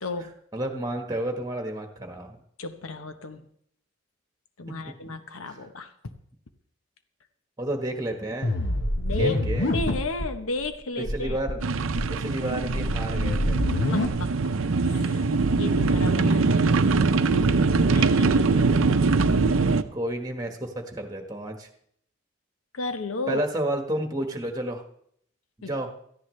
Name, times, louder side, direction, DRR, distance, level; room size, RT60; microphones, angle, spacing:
voice 1, 0.0-0.3 2.6-3.5 4.6-6.1 9.0-9.4 9.7-11.6 13.9-14.5 14.8-15.2 15.5-16.7 17.8-18.7 22.7-23.4 25.6-25.7, left 2 dB, 85° left, 8 dB, 1.0 m, -33 dB
voice 2, 0.5-2.4 4.8-5.0 5.5-5.6 7.6-8.5 9.2-9.7 11.1-11.6 12.1-13.6 19.9-21.7 23.3-24.8 25.7-25.9, right 1 dB, 15° right, 4 dB, 1.4 m, -31 dB
sound 1, 8.4-10.3 10.6-10.7 11.0-11.5 11.9-14.1, left 1 dB, 60° left, 1.2 m, -26 dB
sound 2, 11.6-19.8, right 4 dB, 80° right, 0.6 m, -22 dB
17.0 x 14.0 x 3.3 m, 0.68 s
head